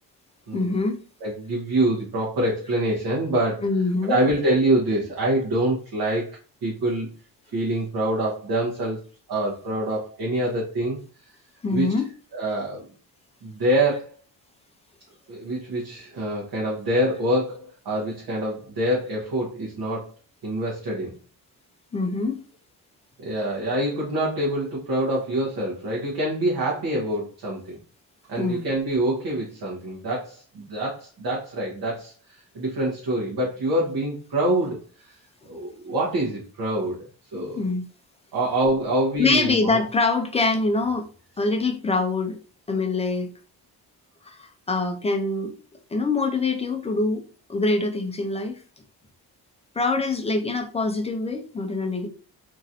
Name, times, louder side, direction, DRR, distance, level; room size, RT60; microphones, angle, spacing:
voice 1, 0.5-1.0 3.6-4.2 11.6-12.1 21.9-22.4 28.4-28.7 37.5-37.8 39.2-41.1 41.4-42.4 42.7-43.3 44.3-45.5 45.9-47.2 47.5-48.6 49.8-52.1, left 3 dB, 20° left, 0.3 m, -24 dB
voice 2, 1.2-3.6 4.0-7.1 7.5-9.0 9.3-11.0 11.7-11.9 12.3-12.9 13.4-14.1 15.3-20.1 20.4-21.1 23.2-27.8 28.3-35.2 35.4-37.1 37.3-37.6 38.3-39.8, right 1 dB, 70° right, 1.1 m, -25 dB
3.0 x 2.5 x 2.7 m
cardioid pair, 145°, 38 cm